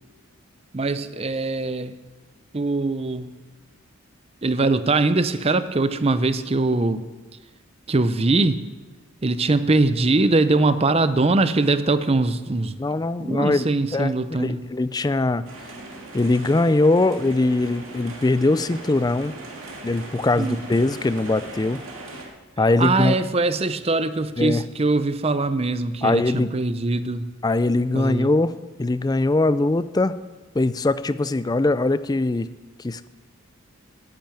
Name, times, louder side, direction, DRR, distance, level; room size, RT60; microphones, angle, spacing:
voice 1, 0.7-1.9 2.5-3.3 4.4-7.0 7.9-8.6 9.2-12.7 13.2-14.6 20.4-20.6 22.8-27.3 27.9-28.3, right 2 dB, 30° right, 12 dB, 0.6 m, -22 dB
voice 2, 12.8-14.1 14.4-15.4 16.1-19.3 19.8-21.8 22.6-23.1 24.4-24.6 26.0-26.5 27.4-30.1 30.6-32.5 32.8-33.1, left 2 dB, 20° left, 14 dB, 0.3 m, -21 dB
sound 1, 15.5-22.3, right 2 dB, 70° right, 2.5 m, -39 dB
10.0 x 8.9 x 9.0 m, 1.2 s
head